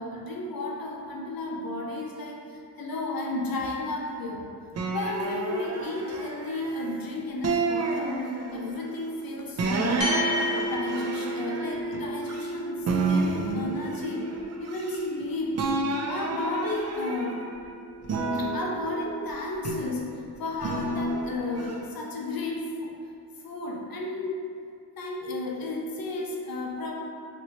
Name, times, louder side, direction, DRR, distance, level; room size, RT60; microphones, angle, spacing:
voice 1, 0.0-4.5 4.9-10.3 10.6-14.3 14.6-15.6 16.1-17.4 18.3-22.9 23.4-24.4 25.0-26.9, left 2 dB, 60° left, -1 dB, 0.6 m, -33 dB
sound 1, 4.7-6.9 7.4-8.8 9.6-12.5 12.8-15.2 15.5-17.6 18.0-20.0 20.6-21.7, right 3 dB, 40° right, 0.4 m, -30 dB
sound 2, 10.0-18.7, left 1 dB, 35° left, 1.0 m, -34 dB
2.9 x 2.6 x 2.7 m, 2.4 s
cardioid pair, 45°, 41 cm